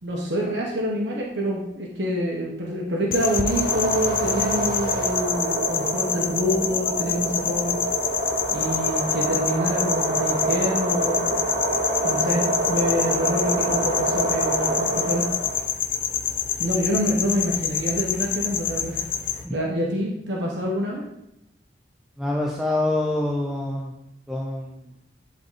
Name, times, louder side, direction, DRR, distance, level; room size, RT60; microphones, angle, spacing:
voice 1, 0.0-7.8 8.5-11.3 12.0-15.3 16.6-19.0 19.5-21.0, equal, 75° right, -2 dB, 1.2 m, -26 dB
sound 1, 3.1-19.4, left 9 dB, 50° left, 0.7 m, -27 dB
sound 2, 3.2-15.7, right 2 dB, 30° right, 0.9 m, -27 dB
voice 2, 22.2-23.9 24.3-24.8, left 1 dB, ahead, -2 dB, 0.6 m, -26 dB
10.5 x 3.9 x 3.9 m, 0.83 s
head